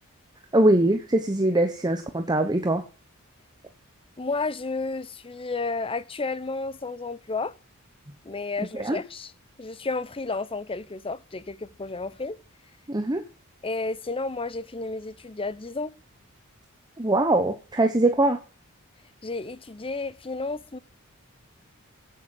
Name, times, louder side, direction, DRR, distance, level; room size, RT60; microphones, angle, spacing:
voice 1, 0.5-2.8 8.7-9.0 12.9-13.2 17.0-18.4, right 1 dB, 20° right, 1.1 m, -22 dB
voice 2, 4.2-7.5 8.2-9.3 9.6-12.4 13.6-15.9 19.2-20.8, left 3 dB, 25° left, 0.8 m, -32 dB
11.5 x 9.4 x 7.8 m
head